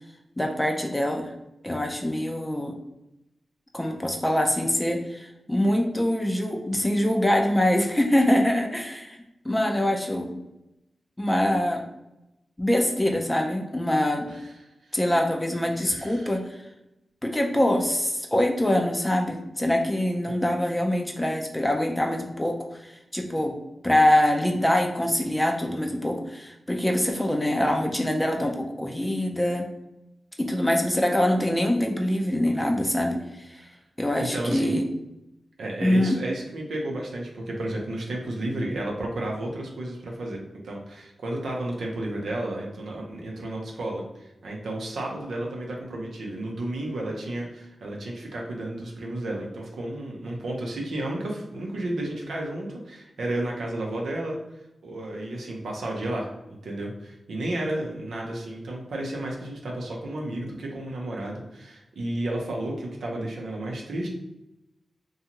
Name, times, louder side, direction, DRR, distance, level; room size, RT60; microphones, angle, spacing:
voice 1, 0.4-1.3 1.6-2.7 3.7-9.2 9.4-10.4 11.2-11.8 12.6-14.3 14.9-16.6 17.2-23.5 23.8-29.7 30.4-33.7 34.0-34.8 35.8-36.2, left 1 dB, 15° left, 2 dB, 0.4 m, -24 dB
voice 2, 15.9-16.3 34.2-34.7 35.6-54.4 54.8-64.1, right 1 dB, 85° right, -1 dB, 0.6 m, -32 dB
2.6 x 2.3 x 2.9 m, 0.92 s
cardioid pair, 60°, 0 cm